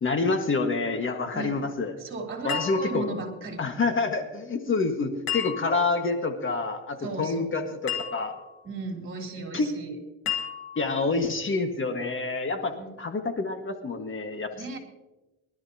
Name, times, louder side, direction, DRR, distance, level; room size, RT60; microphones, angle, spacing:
voice 1, 0.0-1.9 2.4-3.0 3.6-8.3 9.5-9.7 10.3-10.4 10.8-14.5, left 3 dB, 35° left, 6 dB, 1.6 m, -27 dB
voice 2, 2.0-3.6 7.0-7.7 8.6-10.0 12.7-12.9 14.5-14.8, right 3 dB, 35° right, 2 dB, 3.6 m, -36 dB
sound 1, 2.5-3.4 5.3-6.0 7.9-8.6 10.3-11.0, left 9 dB, 80° left, 2.6 m, -33 dB
23.0 x 12.5 x 2.8 m, 1.1 s
supercardioid pair, 90°, 34 cm